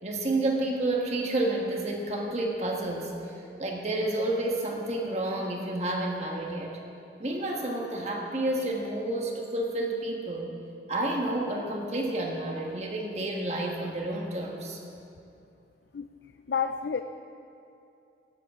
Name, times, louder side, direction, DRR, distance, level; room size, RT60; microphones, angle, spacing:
voice 1, 0.0-3.3 3.6-6.8 7.2-10.6 10.9-14.8, right 1 dB, 40° right, 0 dB, 1.5 m, -30 dB
voice 2, 16.5-17.0, left 6 dB, 75° left, 8 dB, 0.4 m, -29 dB
17.0 x 14.0 x 3.7 m, 2.6 s
head